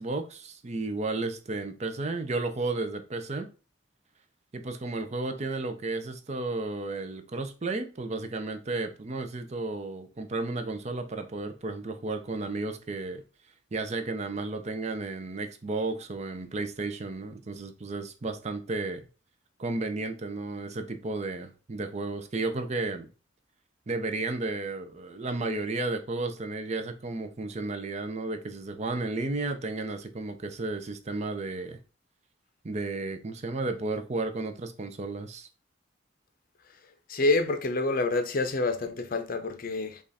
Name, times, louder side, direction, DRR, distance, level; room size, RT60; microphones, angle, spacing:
voice 1, 0.0-3.5 4.5-13.2 13.7-19.0 19.6-23.1 23.9-31.8 32.6-35.5, right 3 dB, 35° right, 0.5 m, -33 dB
voice 2, 37.1-40.0, left 2 dB, 45° left, 0.6 m, -27 dB
5.3 x 2.4 x 4.1 m
head